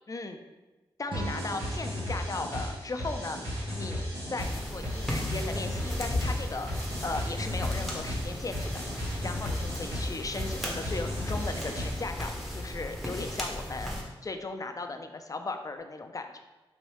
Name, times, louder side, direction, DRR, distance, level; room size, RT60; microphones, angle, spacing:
voice 1, 0.1-0.4 1.0-6.8 7.0-13.9 14.2-16.4, left 3 dB, 35° left, 6 dB, 0.4 m, -37 dB
sound 1, 1.1-4.1, right 1 dB, 60° right, 0.7 m, -42 dB
sound 2, 1.1-12.2, equal, 85° right, 1.3 m, -35 dB
sound 3, 4.4-14.0, left 1 dB, ahead, 0.8 m, -36 dB
3.1 x 2.6 x 3.0 m, 1.2 s
cardioid pair, 40°, 10 cm